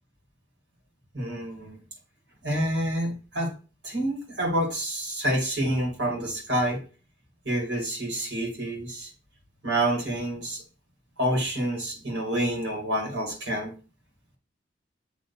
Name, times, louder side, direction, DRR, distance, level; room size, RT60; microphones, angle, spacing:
voice 1, 1.1-1.8 2.4-3.5 3.8-6.8 7.4-9.1 9.6-10.6 11.2-13.7, right 1 dB, 80° right, 1 dB, 2.4 m, -28 dB
7.6 x 3.2 x 4.2 m, 0.34 s
head